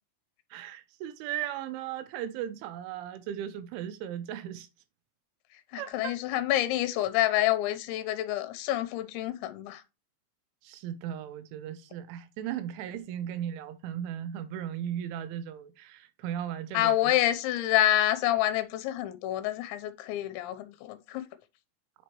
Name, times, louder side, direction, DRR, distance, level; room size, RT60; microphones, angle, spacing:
voice 1, 0.5-4.7 5.7-6.2 10.6-17.1, right 10 dB, 90° right, 3.2 m, -37 dB
voice 2, 5.7-9.8 16.7-21.2, left 13 dB, 80° left, 3.1 m, -27 dB
8.2 x 5.7 x 3.0 m
omnidirectional pair, 5.3 m